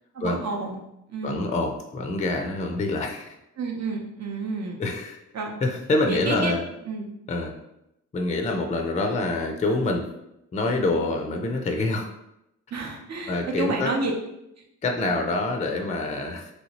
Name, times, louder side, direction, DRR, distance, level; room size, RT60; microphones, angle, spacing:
voice 1, 0.1-0.8 1.1-1.5 3.6-4.8 5.3-5.6 6.1-6.5 6.9-7.1 12.7-14.1, right 3 dB, 60° right, 1 dB, 0.7 m, -30 dB
voice 2, 1.2-3.3 4.8-5.2 5.6-6.6 7.3-7.5 8.1-10.0 10.5-12.1 13.3-13.9 14.8-16.5, left 2 dB, 25° left, 3 dB, 0.3 m, -26 dB
3.1 x 2.7 x 2.8 m, 0.85 s
cardioid pair, 95°, 31 cm